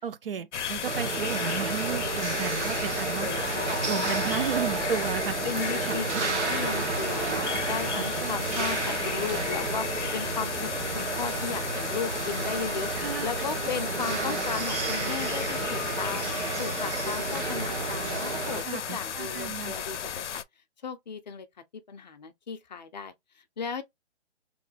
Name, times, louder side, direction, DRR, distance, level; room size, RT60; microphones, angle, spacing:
voice 1, 0.0-5.4 5.7-6.2 7.9-8.6 12.9-13.3 18.6-19.7, right 8 dB, 55° right, 0.4 m, -34 dB
sound 1, 0.5-20.4, left 8 dB, 85° left, 0.5 m, -34 dB
sound 2, 0.8-18.6, right 4 dB, 75° right, 1.1 m, -31 dB
voice 2, 3.2-4.1 5.4-16.3 16.6-20.4 20.8-21.5 21.7-23.8, left 6 dB, 40° left, 0.5 m, -36 dB
3.1 x 2.2 x 3.9 m
hypercardioid pair, 150°, 35 cm